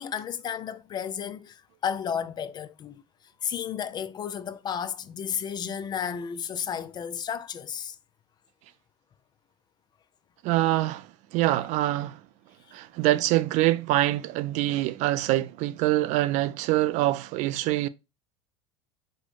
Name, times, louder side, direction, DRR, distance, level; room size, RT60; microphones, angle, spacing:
voice 1, 0.0-3.0 3.4-8.0, left 8 dB, 30° left, 0.4 m, -33 dB
voice 2, 10.4-12.2 12.7-17.9, right 16 dB, 55° right, 0.4 m, -25 dB
4.2 x 2.1 x 4.5 m
supercardioid pair, 105°, 15 cm